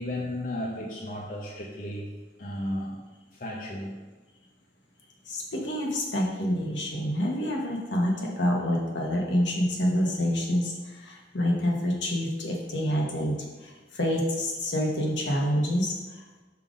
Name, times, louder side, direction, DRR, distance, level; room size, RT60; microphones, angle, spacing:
voice 1, 0.0-2.1 2.4-4.0, left 1 dB, 50° left, -2 dB, 0.7 m, -34 dB
voice 2, 5.3-16.4, equal, 80° left, 0 dB, 1.1 m, -27 dB
5.6 x 3.8 x 5.1 m, 1.3 s
head